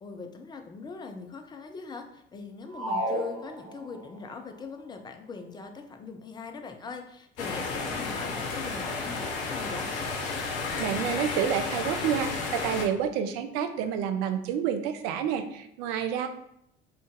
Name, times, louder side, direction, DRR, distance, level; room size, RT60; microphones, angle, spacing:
voice 1, 0.0-9.9, left 4 dB, 15° left, 5 dB, 0.3 m, -41 dB
sound 1, 2.7-4.2, equal, 80° right, 1.0 m, -32 dB
sound 2, 7.4-12.9, left 4 dB, 55° left, 0.6 m, -32 dB
voice 2, 10.8-16.3, right 8 dB, 55° right, 8 dB, 0.5 m, -29 dB
2.5 x 2.2 x 3.6 m, 0.76 s
figure-of-eight pair, 60°, 30 cm